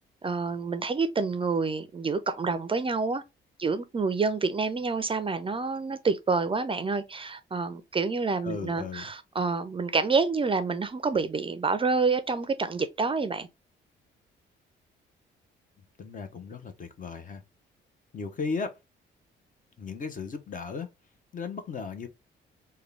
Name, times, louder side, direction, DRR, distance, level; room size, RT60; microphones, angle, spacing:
voice 1, 0.2-3.2 3.6-13.5, right 4 dB, 25° right, 0.4 m, -28 dB
voice 2, 8.4-9.1 16.0-17.4 18.1-18.8 19.8-20.9 21.3-22.1, left 5 dB, 40° left, 0.8 m, -36 dB
3.6 x 2.2 x 3.3 m
cardioid pair, 90°, 20 cm